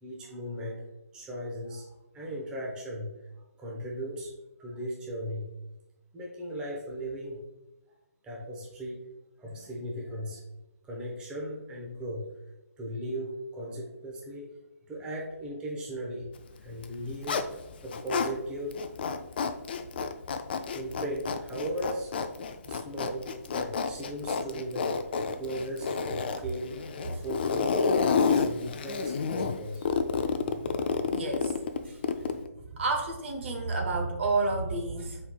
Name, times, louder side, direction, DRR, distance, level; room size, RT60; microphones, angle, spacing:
voice 1, 0.0-3.2 3.6-4.3 4.6-5.5 6.1-7.4 8.2-9.0 9.4-10.4 10.8-12.3 12.8-14.5 14.9-16.3 16.6-18.8 20.7-22.1 22.6-25.0 25.4-29.9, right 1 dB, 10° right, -3 dB, 0.8 m, -37 dB
Zipper (clothing), 16.7-18.3 18.7-32.5, left 5 dB, 40° left, 0.3 m, -30 dB
voice 2, 31.1-31.5 31.8-32.0 32.5-35.2, right 3 dB, 45° right, 3 dB, 0.8 m, -30 dB
5.6 x 4.2 x 2.3 m, 0.96 s
figure-of-eight pair, 145°, 9 cm